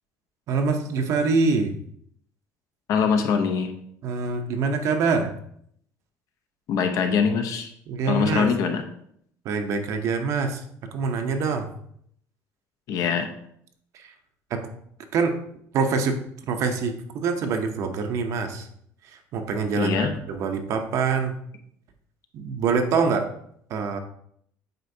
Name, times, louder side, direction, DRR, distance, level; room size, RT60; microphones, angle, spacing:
voice 1, 0.5-1.7 4.0-5.3 7.9-8.5 9.4-10.6 10.9-11.7 13.9-14.1 14.5-14.7 15.1-15.4 15.7-16.2 16.5-18.7 19.0-21.4 22.3-23.3 23.7-24.0, right 4 dB, 55° right, 6 dB, 0.7 m, -25 dB
voice 2, 2.9-3.7 6.7-7.7 8.1-8.8 12.9-13.3 19.8-20.1, left 6 dB, 60° left, 6 dB, 0.8 m, -23 dB
7.9 x 4.5 x 2.7 m, 0.68 s
cardioid pair, 145°, 6 cm